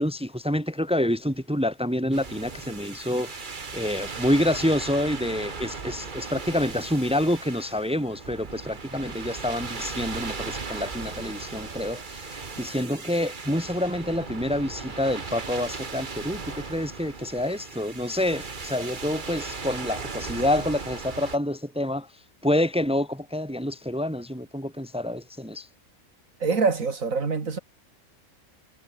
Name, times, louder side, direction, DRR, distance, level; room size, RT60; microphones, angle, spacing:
voice 1, 0.0-22.1 22.4-25.7, left 1 dB, 5° right, 2.1 m, -27 dB
sound 1, 2.1-21.4, right 4 dB, 35° right, 1.6 m, -37 dB
voice 2, 26.4-27.6, right 4 dB, 70° right, 2.7 m, -25 dB
omnidirectional pair, 1.5 m